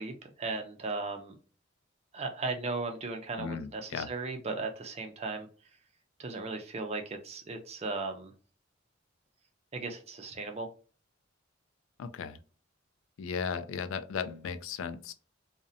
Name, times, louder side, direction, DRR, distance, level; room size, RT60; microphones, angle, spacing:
voice 1, 0.0-1.3 2.1-5.5 6.2-8.3 9.7-10.7, right 3 dB, 35° right, 5 dB, 0.5 m, -36 dB
voice 2, 3.4-4.1 12.0-12.4 13.2-15.1, left 6 dB, 80° left, 11 dB, 0.3 m, -36 dB
2.5 x 2.1 x 2.6 m, 0.39 s
head